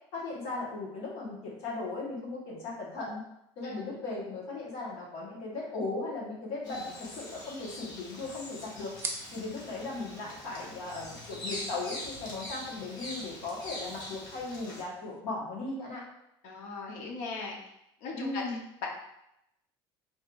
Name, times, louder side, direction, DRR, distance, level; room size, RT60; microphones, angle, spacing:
voice 1, 0.1-3.2 3.6-8.9 9.3-16.0 18.1-18.6, left 3 dB, 65° left, -4 dB, 1.5 m, -37 dB
voice 2, 3.6-4.0 16.4-17.6 18.0-18.9, left 4 dB, 85° left, 0 dB, 1.0 m, -39 dB
Bird vocalization bird call bird song, 6.6-14.8, left 1 dB, 40° left, 0.9 m, -43 dB
sound 1, 7.6-15.2, right 3 dB, 20° right, 0.4 m, -47 dB
4.6 x 3.2 x 2.6 m, 0.82 s
cardioid pair, 170°, 11 cm